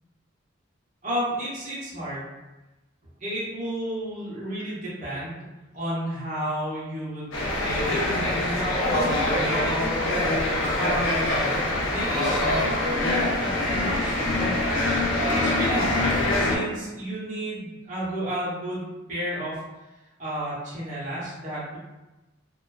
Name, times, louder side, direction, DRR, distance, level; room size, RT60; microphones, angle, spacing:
voice 1, 1.0-2.3 3.2-5.5 5.7-10.0 10.7-14.5 15.2-19.6 20.2-21.8, equal, 35° right, -8 dB, 0.8 m, -32 dB
sound 1, 7.3-16.6, left 1 dB, 80° left, 0.6 m, -24 dB
2.4 x 2.2 x 2.3 m, 1.1 s
head